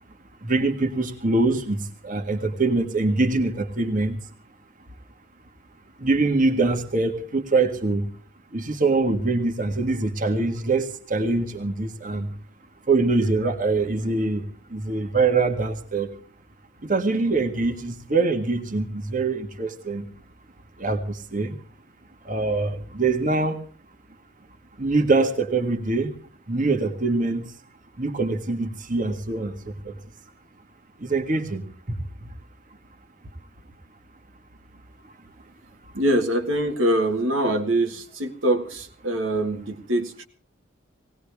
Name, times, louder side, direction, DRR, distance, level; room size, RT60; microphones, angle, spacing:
voice 1, 0.4-4.2 6.0-8.1 8.5-12.3 12.9-14.4 14.7-16.1 16.8-20.1 20.8-21.6 22.2-23.6 24.8-26.1 26.5-27.5 28.0-29.9 31.0-32.0, right 3 dB, 40° right, 4 dB, 1.7 m, -24 dB
voice 2, 35.9-40.3, right 1 dB, 75° right, 4 dB, 1.8 m, -24 dB
19.0 x 18.5 x 3.5 m, 0.44 s
head